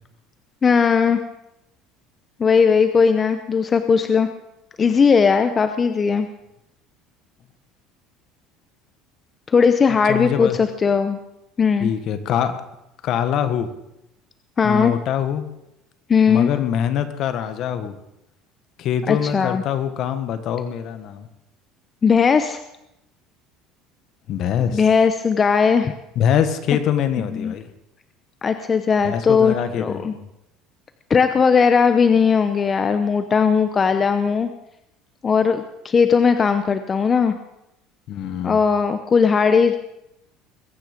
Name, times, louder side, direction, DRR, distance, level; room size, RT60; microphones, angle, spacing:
voice 1, 0.6-1.2 2.4-4.3 4.8-6.3 9.5-11.2 11.6-11.9 14.6-14.9 16.1-16.5 19.1-19.6 22.0-22.6 24.7-25.9 27.3-27.5 28.4-30.1 31.1-34.5 35.2-37.3 38.4-39.8, left 6 dB, 25° left, 9 dB, 0.8 m, -18 dB
voice 2, 10.1-10.6 11.8-12.5 13.0-13.7 14.6-15.4 16.3-17.9 18.8-21.3 24.3-24.8 26.1-27.7 29.0-30.2 38.1-38.6, left 9 dB, 55° left, 10 dB, 1.5 m, -23 dB
21.5 x 9.4 x 5.3 m, 0.86 s
cardioid pair, 125°, 0 cm